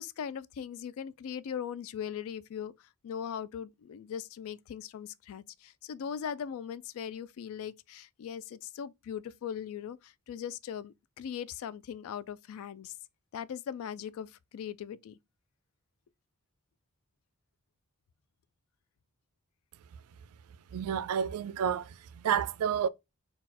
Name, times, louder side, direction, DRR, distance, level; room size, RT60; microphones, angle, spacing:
voice 1, 0.0-2.7 3.0-13.0 13.3-15.2, left 8 dB, 65° left, 0.3 m, -39 dB
voice 2, 20.7-22.9, right 8 dB, 75° right, 0.3 m, -30 dB
4.1 x 2.3 x 4.0 m
head